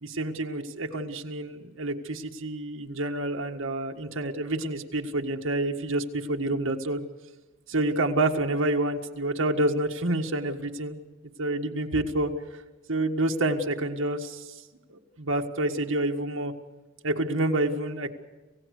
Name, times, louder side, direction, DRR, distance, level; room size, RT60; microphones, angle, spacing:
voice 1, 0.0-7.0 7.7-11.0 11.4-12.3 12.9-14.5 14.9-16.5 17.0-18.1, right 2 dB, 75° right, 2 dB, 1.7 m, -28 dB
27.5 x 16.5 x 6.6 m, 1.2 s
head